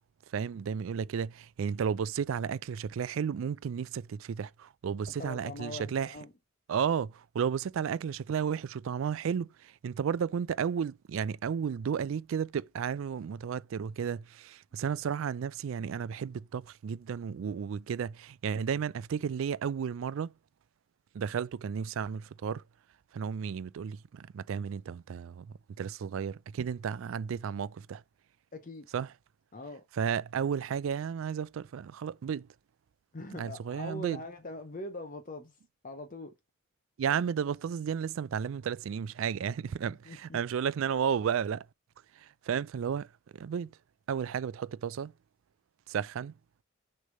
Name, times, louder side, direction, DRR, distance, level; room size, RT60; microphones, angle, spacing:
voice 1, 0.3-6.1 6.7-20.3 21.1-22.6 23.1-28.0 28.9-29.1 30.0-32.5 33.3-34.2 37.0-41.7 42.2-43.7 44.1-45.1 45.9-46.3, right 7 dB, 70° right, 0.3 m, -33 dB
voice 2, 5.2-6.3 28.5-28.9 29.5-29.8 33.1-35.6 35.8-36.3 39.8-40.4, left 2 dB, 40° left, 0.7 m, -42 dB
6.4 x 3.3 x 5.3 m
head